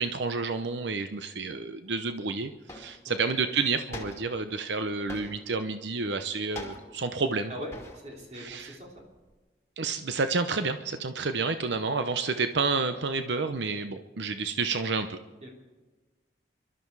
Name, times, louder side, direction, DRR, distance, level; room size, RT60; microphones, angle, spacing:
voice 1, 0.0-7.5 8.3-8.8 9.8-15.2, right 4 dB, 90° right, 9 dB, 0.8 m, -30 dB
sound 1, 2.0-2.1 2.7-3.1 3.9-4.5 5.1-5.6 6.6-7.1 7.7-8.2 8.5-9.3, left 2 dB, 15° left, 2.4 m, -43 dB
voice 2, 7.5-9.1 15.4-15.5, equal, 40° right, 0 dB, 3.4 m, -42 dB
24.5 x 12.5 x 4.7 m, 1.3 s
head